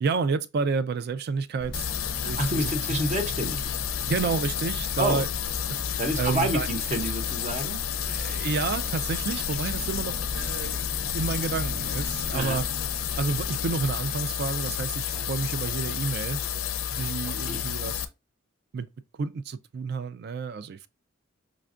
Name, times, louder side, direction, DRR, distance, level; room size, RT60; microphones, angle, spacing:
voice 1, 0.0-2.7 4.1-5.3 6.2-6.7 8.1-12.7 13.2-16.4 16.9-18.1 18.7-18.9 19.2-20.9, right 4 dB, 50° right, 0.3 m, -30 dB
sound 1, 1.6-13.9, equal, 80° right, 1.0 m, -39 dB
sound 2, 1.7-18.1, left 10 dB, 75° left, 0.4 m, -31 dB
voice 2, 2.2-3.8 5.0-5.2 6.0-8.4 9.8-9.9 12.3-12.6 15.1-15.2 16.8-17.1 17.4-17.7, right 1 dB, 35° right, 0.8 m, -30 dB
5.0 x 2.3 x 2.4 m
head